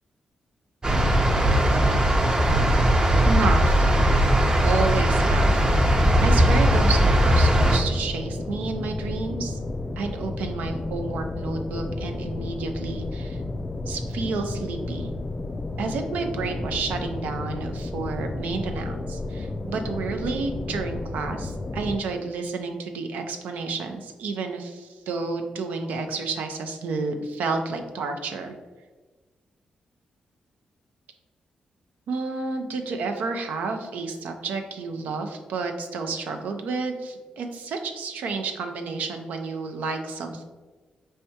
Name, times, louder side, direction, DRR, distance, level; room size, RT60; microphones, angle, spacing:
sound 1, 0.8-7.8, equal, 30° right, 0.6 m, -19 dB
voice 1, 3.2-3.9 4.6-5.7 6.2-9.6 10.0-13.4 13.9-15.1 15.8-28.5 32.1-40.4, right 4 dB, 85° right, 5 dB, 0.5 m, -30 dB
sound 2, 4.7-22.0, left 2 dB, 30° left, 0.3 m, -32 dB
4.6 x 3.2 x 2.8 m, 1.3 s
cardioid pair, 70°, 3 cm